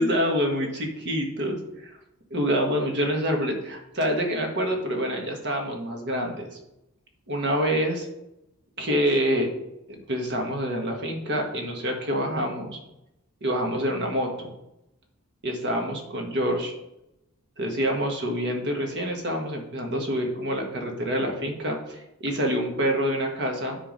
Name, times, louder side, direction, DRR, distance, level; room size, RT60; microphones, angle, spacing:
voice 1, 0.0-2.0 2.3-6.5 7.3-8.1 8.8-9.5 9.9-12.8 13.4-14.5 15.4-16.7 17.6-23.8, equal, 50° right, 2 dB, 1.6 m, -27 dB
10.5 x 3.7 x 5.2 m, 0.86 s
head